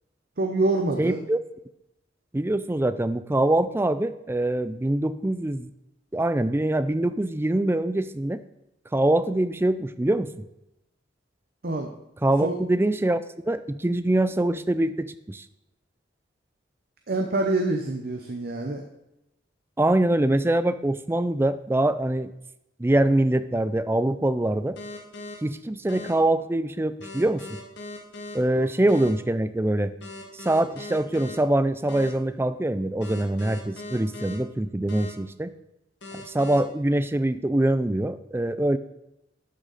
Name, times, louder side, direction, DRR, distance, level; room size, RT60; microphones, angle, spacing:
voice 1, 0.4-1.2 11.6-11.9 12.4-12.6 17.1-18.8 28.6-28.7, right 2 dB, 55° right, 3 dB, 0.9 m, -26 dB
voice 2, 1.0-1.4 2.3-5.7 6.1-8.4 8.9-10.3 12.2-13.2 13.5-15.4 19.8-22.3 22.8-24.8 25.4-27.6 28.3-29.9 30.3-35.5 36.3-38.8, right 1 dB, 15° right, 13 dB, 0.4 m, -24 dB
sound 1, 24.8-25.3 25.9-26.1 27.0-28.4 28.9-29.1 30.0-31.4 31.9-32.1 33.0-34.4 34.9-35.1 36.0-36.6, left 2 dB, 70° left, 1.9 m, -39 dB
12.0 x 6.4 x 4.1 m, 0.87 s
head